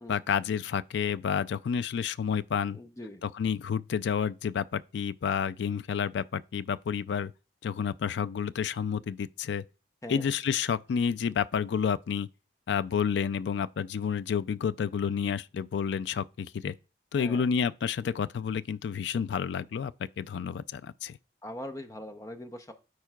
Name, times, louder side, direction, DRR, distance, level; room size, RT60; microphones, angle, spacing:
voice 1, 0.1-2.8 3.2-7.3 7.6-9.6 10.1-12.3 12.7-16.7 17.1-21.2, left 7 dB, 65° left, 0.3 m, -30 dB
voice 2, 2.7-3.2 10.0-10.3 17.2-17.5 21.4-22.7, left 1 dB, 15° left, 0.6 m, -41 dB
13.5 x 4.5 x 2.3 m
head